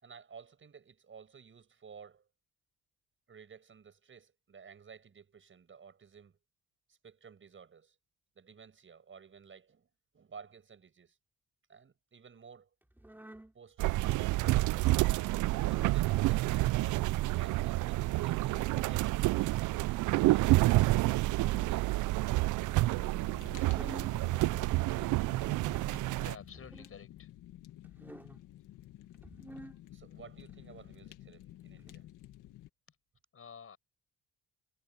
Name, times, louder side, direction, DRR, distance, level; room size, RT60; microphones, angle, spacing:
voice 1, 0.0-2.3 3.3-6.4 6.9-7.9 8.3-9.9 10.1-11.2 11.7-12.7 13.5-14.6 15.0-19.7 20.2-20.8 23.8-24.0 29.9-32.1, right 6 dB, 40° right, 6.6 m, -54 dB
sound 1, 12.9-13.5 14.2-14.7 15.6-16.0 17.0-17.4 18.5-19.0 20.1-20.5 21.2-21.8 22.5-22.9 23.5-24.2 25.0-25.5 26.3-26.9 27.8-28.4 29.1-29.8 30.5-31.0 31.8-31.9, right 1 dB, 5° right, 3.4 m, -52 dB
sound 2, 13.8-26.3, right 18 dB, 80° right, 0.5 m, -29 dB
Fire, 22.8-32.7, left 14 dB, 90° left, 1.9 m, -52 dB
voice 2, 25.9-27.3 32.9-33.0 33.3-33.8, left 7 dB, 45° left, 6.1 m, -51 dB
cardioid pair, 90°, 30 cm